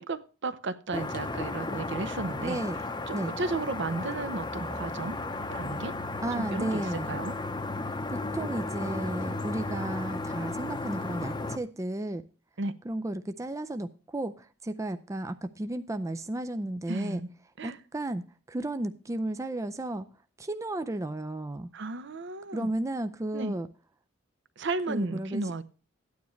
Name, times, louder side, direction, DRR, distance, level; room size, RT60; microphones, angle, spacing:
voice 1, 0.0-2.6 3.1-5.2 5.5-5.9 6.3-7.3 12.6-12.7 16.9-17.3 17.6-17.8 21.7-22.7 23.3-23.6 24.6-25.6, right 3 dB, 60° right, 0.7 m, -34 dB
sound 1, 0.9-11.6, left 2 dB, 20° left, 0.7 m, -34 dB
voice 2, 2.4-2.8 3.1-3.3 6.2-7.1 8.1-12.2 12.8-17.2 17.6-20.1 20.4-21.7 22.5-23.7 24.9-25.5, right 1 dB, 15° right, 0.4 m, -33 dB
13.0 x 9.4 x 3.1 m
head